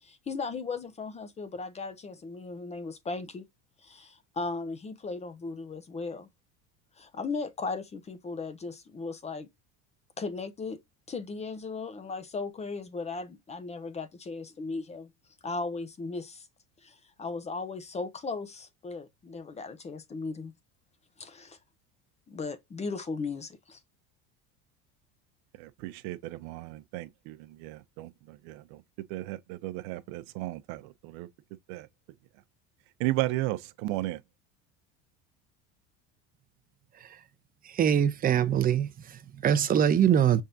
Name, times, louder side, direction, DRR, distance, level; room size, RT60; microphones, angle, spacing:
voice 1, 0.0-3.4 3.8-6.3 7.0-9.5 10.2-10.8 11.1-15.1 15.4-16.5 16.8-20.5 21.2-21.6 22.3-23.8, left 4 dB, 20° left, 0.6 m, -37 dB
voice 2, 25.6-28.8 29.1-31.3 31.7-31.9 33.0-34.2, right 17 dB, 75° right, 0.7 m, -34 dB
voice 3, 37.7-40.4, right 9 dB, 25° right, 0.6 m, -23 dB
5.6 x 3.6 x 2.6 m
supercardioid pair, 130°, 34 cm